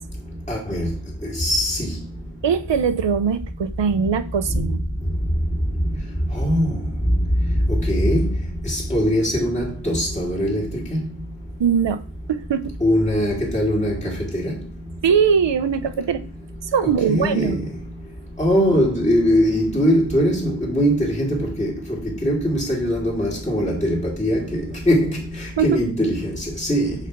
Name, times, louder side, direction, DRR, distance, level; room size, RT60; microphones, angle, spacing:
voice 1, 0.5-0.9 1.4-1.9 6.3-6.7 7.7-8.3 8.7-11.0 12.8-14.5 17.1-17.6 18.4-21.7 22.2-26.3 26.6-27.0, equal, 15° left, 1.9 m, -21 dB
voice 2, 2.4-4.8 11.6-12.0 12.3-12.8 15.0-16.3 16.7-17.7 25.6-25.8, right 6 dB, 75° right, 0.7 m, -21 dB
4.9 x 4.3 x 5.9 m
wide cardioid pair, 75°, 44 cm